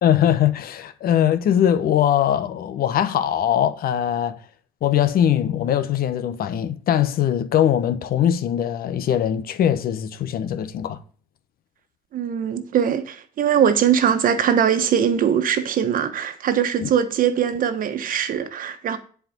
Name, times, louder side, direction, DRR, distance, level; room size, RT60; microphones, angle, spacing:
voice 1, 0.0-4.4 4.8-11.0 16.8-16.9, left 10 dB, 60° left, 1.1 m, -21 dB
voice 2, 12.1-19.0, right 8 dB, 55° right, 1.3 m, -21 dB
11.0 x 5.0 x 5.9 m
cardioid pair, 110°, 17 cm